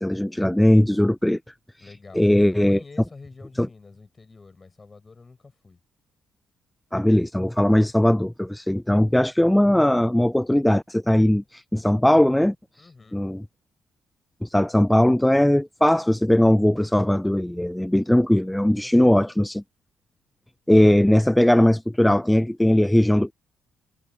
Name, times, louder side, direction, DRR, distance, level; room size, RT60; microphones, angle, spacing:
voice 1, 0.0-1.4 2.1-2.8 3.6-3.7 6.9-12.5 13.1-13.4 14.4-19.6 20.7-23.3, left 1 dB, 5° left, 0.5 m, -19 dB
voice 2, 1.8-2.3 2.7-5.8 12.8-13.2 18.8-19.3, left 4 dB, 30° left, 6.5 m, -47 dB
cardioid pair, 90°, 0 cm